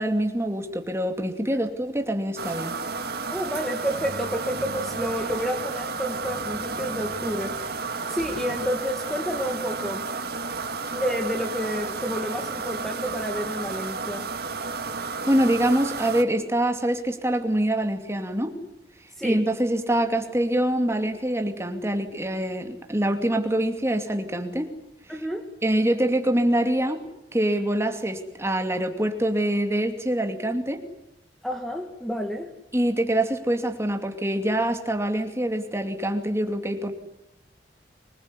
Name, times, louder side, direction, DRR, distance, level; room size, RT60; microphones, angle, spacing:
voice 1, 0.0-2.8 15.3-18.5 19.2-24.7 25.6-27.0 27.3-30.8 32.7-36.9, right 1 dB, 15° right, 6 dB, 2.5 m, -25 dB
sound 1, 2.4-16.2, right 4 dB, 60° right, 2.1 m, -32 dB
voice 2, 3.3-7.6 8.1-10.1 10.9-14.3 19.2-19.4 25.1-25.5 31.4-32.5, equal, ahead, 4 dB, 1.8 m, -30 dB
24.5 x 21.0 x 9.8 m, 0.86 s
head